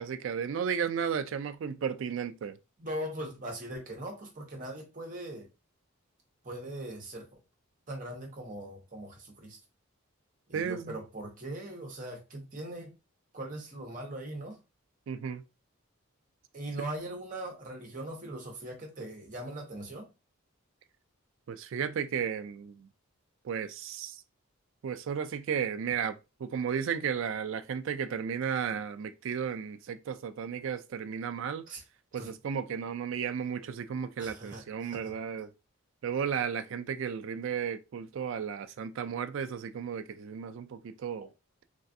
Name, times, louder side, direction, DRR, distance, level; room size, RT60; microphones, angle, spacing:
voice 1, 0.0-2.6 10.5-11.0 15.1-15.4 21.5-22.9 23.4-24.2 24.8-31.6 32.1-35.5 36.0-41.3, right 7 dB, 60° right, 0.3 m, -34 dB
voice 2, 2.8-5.5 6.4-7.3 7.9-9.6 10.5-12.9 13.3-14.6 16.5-20.1 31.7-31.8 32.1-32.3 34.2-35.1, right 1 dB, 35° right, 0.9 m, -40 dB
3.3 x 2.3 x 2.6 m
head